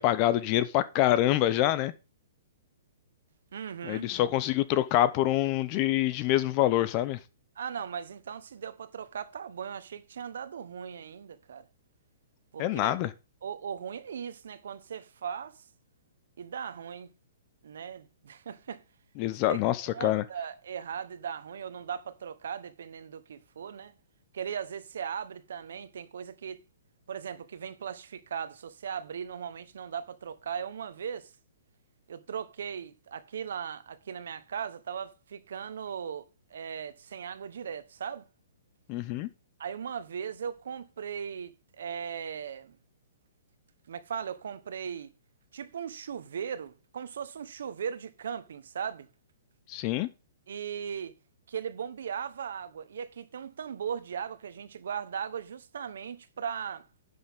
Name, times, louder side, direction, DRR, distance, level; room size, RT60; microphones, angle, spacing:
voice 1, 0.0-1.9 3.8-7.2 12.6-13.1 19.2-20.2 38.9-39.3 49.7-50.1, left 14 dB, 25° left, 0.6 m, -26 dB
voice 2, 3.5-4.1 7.6-11.7 12.5-12.9 13.4-15.6 16.4-17.1 17.6-18.8 19.5-19.6 19.9-23.9 24.3-26.6 27.1-31.3 32.1-38.3 39.6-42.8 43.9-45.1 45.5-49.1 50.5-51.1 51.5-56.8, right 7 dB, 70° right, 1.1 m, -38 dB
10.5 x 6.6 x 3.6 m
hypercardioid pair, 170°, 0 cm